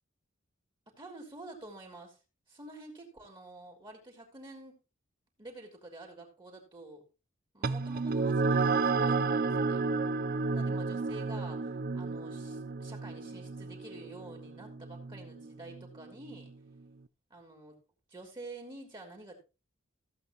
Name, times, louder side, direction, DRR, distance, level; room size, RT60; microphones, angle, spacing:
voice 1, 1.0-2.2 2.5-4.7 5.4-7.0 7.5-9.9 10.5-16.5 17.3-17.8 18.1-19.3, right 2 dB, 25° right, 2 dB, 3.0 m, -48 dB
sound 1, 7.6-16.5, right 4 dB, 45° right, 0.5 m, -32 dB
15.5 x 8.0 x 3.0 m, 0.29 s
head